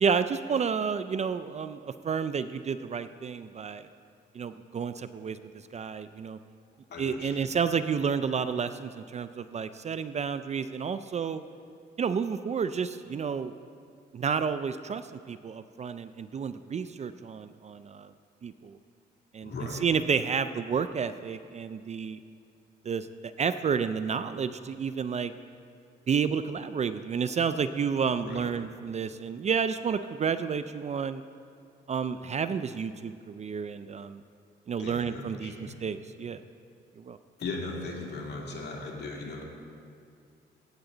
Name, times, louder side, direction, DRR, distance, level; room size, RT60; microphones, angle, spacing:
voice 1, 0.0-3.8 4.4-5.4 5.7-6.4 7.0-11.4 12.0-13.5 14.1-15.0 15.3-18.1 18.4-18.8 19.3-19.5 19.8-22.2 22.9-25.3 26.1-31.2 31.9-34.2 34.7-36.4 37.1-37.2, right 6 dB, 35° right, 12 dB, 0.4 m, -30 dB
voice 2, 6.9-7.5 19.4-19.8 28.2-28.5 34.8-35.7 37.4-39.4, left 3 dB, 55° left, -1 dB, 2.3 m, -38 dB
16.0 x 8.2 x 3.9 m, 2.4 s
cardioid pair, 90°, 20 cm